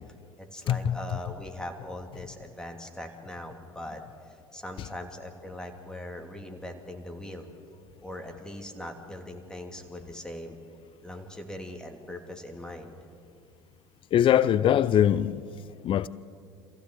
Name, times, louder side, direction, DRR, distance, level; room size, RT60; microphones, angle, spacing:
voice 1, 0.4-4.0 4.3-7.5 8.0-10.6 11.0-12.9, left 1 dB, 5° left, 3.0 m, -40 dB
voice 2, 14.1-15.4 15.8-16.1, left 10 dB, 40° left, 0.6 m, -22 dB
27.0 x 15.5 x 8.4 m
figure-of-eight pair, 65°, 13 cm